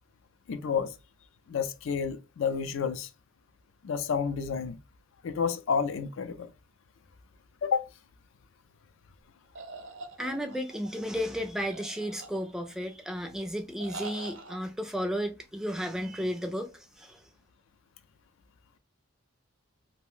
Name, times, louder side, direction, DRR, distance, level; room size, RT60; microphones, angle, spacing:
voice 1, 0.5-1.0 1.5-3.1 3.8-4.8 5.2-6.5 7.6-7.9, left 6 dB, 70° left, 0.4 m, -30 dB
sound 1, 9.6-10.9 11.6-12.7 13.8-14.6, right 3 dB, 60° right, 0.5 m, -43 dB
voice 2, 10.2-17.2, equal, 5° right, 0.3 m, -33 dB
2.5 x 2.0 x 3.6 m
head